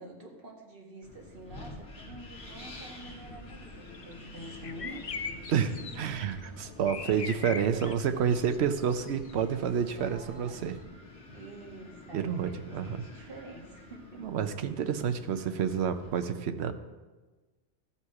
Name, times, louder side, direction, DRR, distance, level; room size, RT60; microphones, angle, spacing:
voice 1, 0.0-6.2 6.6-7.4 7.7-8.1 9.5-10.6 11.3-14.3, right 1 dB, 50° right, -2 dB, 2.1 m, -48 dB
Wind, 1.0-16.2, left 2 dB, 80° left, 2.0 m, -50 dB
sound 1, 2.4-10.9, left 1 dB, 15° left, 1.1 m, -52 dB
sound 2, 3.9-4.1 4.4-6.5 6.9-8.0 8.3-8.6 8.9-9.5, left 6 dB, 50° left, 0.4 m, -40 dB
voice 2, 5.5-10.8 12.1-13.0 14.2-16.7, right 7 dB, 70° right, 9 dB, 0.9 m, -29 dB
15.5 x 5.6 x 4.7 m, 1.3 s
omnidirectional pair, 1.2 m